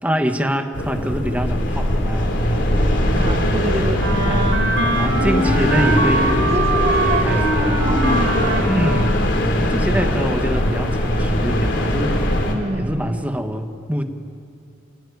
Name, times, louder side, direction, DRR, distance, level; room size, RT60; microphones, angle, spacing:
voice 1, 0.0-3.5 4.2-4.6 4.9-6.4 7.2-7.4 8.7-9.1 9.6-12.2 12.7-14.0, equal, 10° right, 5 dB, 1.6 m, -25 dB
sound 1, 0.7-12.5, left 1 dB, 65° left, 3.7 m, -20 dB
voice 2, 3.1-4.0 6.5-9.0 12.5-13.3, right 1 dB, 35° right, 7 dB, 1.7 m, -28 dB
Wind instrument woodwind instrument, 4.0-9.2, right 1 dB, 75° right, 4.5 m, -22 dB
29.0 x 17.5 x 9.7 m, 2.4 s
head